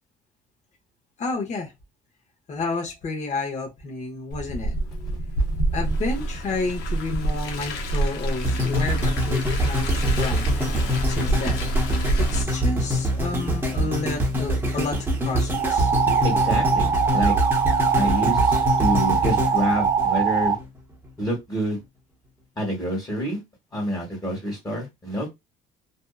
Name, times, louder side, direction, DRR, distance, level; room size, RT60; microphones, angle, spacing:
voice 1, 1.2-1.7 2.5-4.7 5.7-10.5 11.1-11.6 12.2-15.9, left 3 dB, 45° left, 0.9 m, -30 dB
Car, 4.3-12.4, right 2 dB, 85° left, 0.7 m, -26 dB
sound 1, 8.4-20.6 21.2-21.3, equal, 15° right, 0.9 m, -25 dB
sound 2, 15.5-20.6, right 6 dB, 35° right, 0.5 m, -22 dB
voice 2, 16.2-17.4 18.0-20.6 21.2-21.8 22.6-23.4 23.7-25.3, equal, 25° left, 1.3 m, -27 dB
2.6 x 2.3 x 2.3 m
cardioid pair, 110°, 17 cm